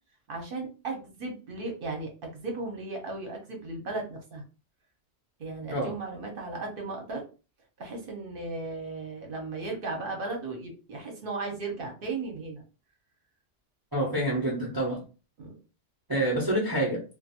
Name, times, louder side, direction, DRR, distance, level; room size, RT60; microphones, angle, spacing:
voice 1, 0.3-4.4 5.4-7.2 7.8-12.6 15.4-15.6, right 3 dB, 50° right, 2 dB, 1.0 m, -36 dB
voice 2, 13.9-15.0 16.1-17.0, right 1 dB, 20° right, -4 dB, 0.7 m, -27 dB
2.5 x 2.3 x 2.8 m, 0.33 s
omnidirectional pair, 1.2 m